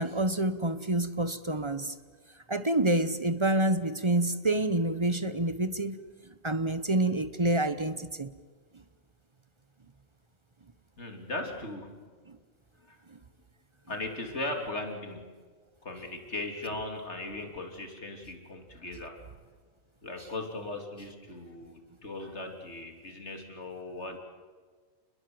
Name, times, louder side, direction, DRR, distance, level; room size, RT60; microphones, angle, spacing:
voice 1, 0.0-1.9 2.5-6.0 6.4-8.3 12.3-12.4, right 2 dB, 25° right, 12 dB, 0.8 m, -27 dB
voice 2, 11.0-11.9 12.9-13.0 13.9-15.3 15.8-19.2 20.0-24.2, left 2 dB, 55° left, 4 dB, 3.2 m, -38 dB
29.0 x 21.0 x 7.8 m, 1.5 s
omnidirectional pair, 1.4 m